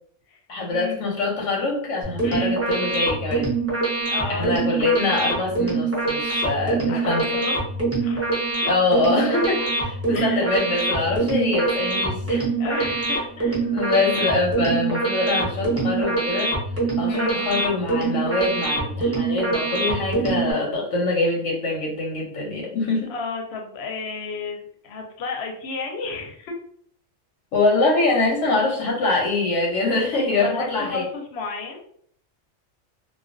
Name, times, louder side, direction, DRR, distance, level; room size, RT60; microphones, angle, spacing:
voice 1, 0.5-3.5 4.3-7.2 8.6-12.5 13.7-16.5 17.0-23.1 27.5-31.0, left 3 dB, 90° left, -1 dB, 1.0 m, -24 dB
sound 1, 2.0-20.5, right 3 dB, 20° right, 0.5 m, -24 dB
voice 2, 2.2-2.6 4.0-4.5 6.9-7.6 8.0-8.4 9.6-9.7 10.1-10.4 12.6-13.6 17.1-17.4 23.1-26.5 30.3-31.8, left 4 dB, 65° left, 2 dB, 0.8 m, -32 dB
2.3 x 2.2 x 2.5 m, 0.63 s
omnidirectional pair, 1.3 m